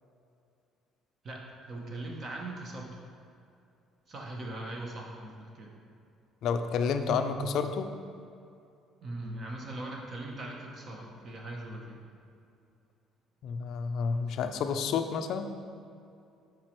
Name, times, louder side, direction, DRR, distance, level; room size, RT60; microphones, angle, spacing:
voice 1, 1.2-3.0 4.1-5.7 9.0-12.0, right 2 dB, 30° right, 0 dB, 0.8 m, -40 dB
voice 2, 6.4-7.9 13.4-15.5, left 5 dB, 55° left, 8 dB, 0.4 m, -30 dB
7.3 x 5.0 x 3.0 m, 2.5 s
cardioid pair, 165°, 0 cm